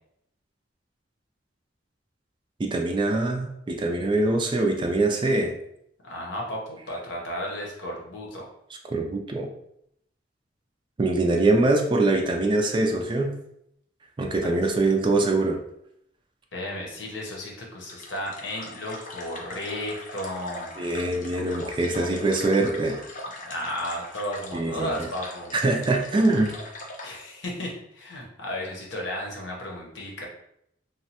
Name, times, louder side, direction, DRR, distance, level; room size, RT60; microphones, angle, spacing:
voice 1, 2.6-5.5 8.9-9.5 11.0-13.4 14.2-15.6 20.8-23.0 24.5-25.1 25.5-26.5, right 2 dB, 25° right, 3 dB, 0.3 m, -23 dB
voice 2, 6.0-8.4 14.4-14.5 16.5-20.7 23.4-25.5 27.0-30.3, left 1 dB, 75° left, -1 dB, 0.8 m, -34 dB
sound 1, 17.9-27.2, left 2 dB, 45° left, 0.5 m, -41 dB
3.0 x 2.1 x 2.8 m, 0.75 s
head